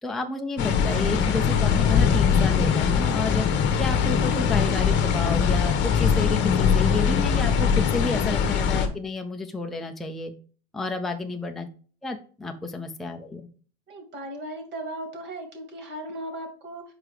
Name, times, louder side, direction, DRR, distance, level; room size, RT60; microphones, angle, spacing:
voice 1, 0.0-3.5 3.8-10.3 10.7-11.7 12.0-13.5, left 3 dB, ahead, 4 dB, 0.5 m, -31 dB
sound 1, 0.6-8.9, left 7 dB, 35° left, 1.2 m, -22 dB
voice 2, 13.9-16.8, right 1 dB, 35° right, 4 dB, 2.5 m, -37 dB
4.9 x 4.7 x 4.8 m, 0.41 s
supercardioid pair, 130°, 32 cm